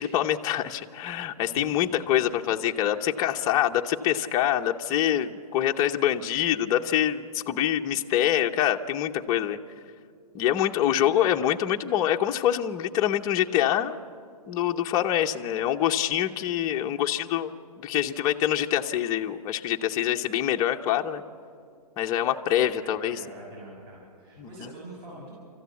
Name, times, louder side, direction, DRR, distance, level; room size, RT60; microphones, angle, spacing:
voice 1, 0.0-9.6 10.3-14.0 14.5-17.5 17.8-21.2 22.0-23.2 24.4-24.7, left 11 dB, 20° left, 3 dB, 0.7 m, -25 dB
voice 2, 11.0-11.4 22.6-25.4, right 1 dB, 35° right, -4 dB, 6.4 m, -45 dB
28.5 x 14.0 x 8.2 m, 2.3 s
hypercardioid pair, 150°, 20 cm